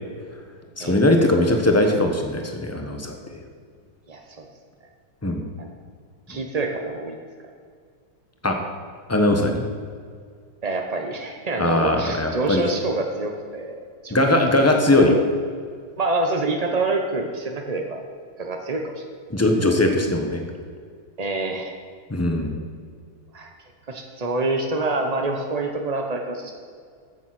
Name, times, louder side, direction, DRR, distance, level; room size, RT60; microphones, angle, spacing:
voice 1, 0.8-3.4 5.2-5.5 6.3-6.4 8.4-8.6 9.1-9.6 11.6-12.6 14.1-15.1 19.3-20.4 22.1-22.6, left 1 dB, 15° left, 3 dB, 0.5 m, -20 dB
voice 2, 4.1-4.5 5.6-5.7 6.3-7.2 10.6-14.3 14.9-15.2 16.0-18.0 18.4-19.0 21.2-21.8 23.3-23.5 23.9-26.5, right 2 dB, 60° right, 3 dB, 0.4 m, -27 dB
14.0 x 7.2 x 6.0 m, 2.1 s
omnidirectional pair, 2.3 m